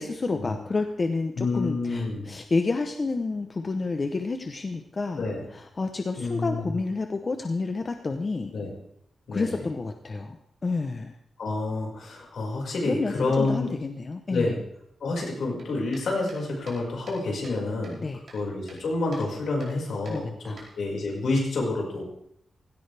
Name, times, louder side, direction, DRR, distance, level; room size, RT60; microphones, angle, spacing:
voice 1, 0.0-8.5 9.3-10.4 10.6-11.2 12.9-14.5 18.0-18.2 20.1-20.6, left 3 dB, 30° left, 6 dB, 0.7 m, -29 dB
voice 2, 1.4-2.3 5.2-5.4 6.2-6.7 8.5-8.7 9.3-9.6 11.4-13.7 14.3-14.6 15.0-18.1 18.3-22.0, left 3 dB, 70° left, -1 dB, 5.1 m, -28 dB
sound 1, 15.6-17.6 17.8-18.8 19.1-19.3 19.6-19.7 20.1-21.1, right 3 dB, 55° right, 4.8 m, -49 dB
17.0 x 16.5 x 3.4 m, 0.76 s
wide cardioid pair, 170°, 0 cm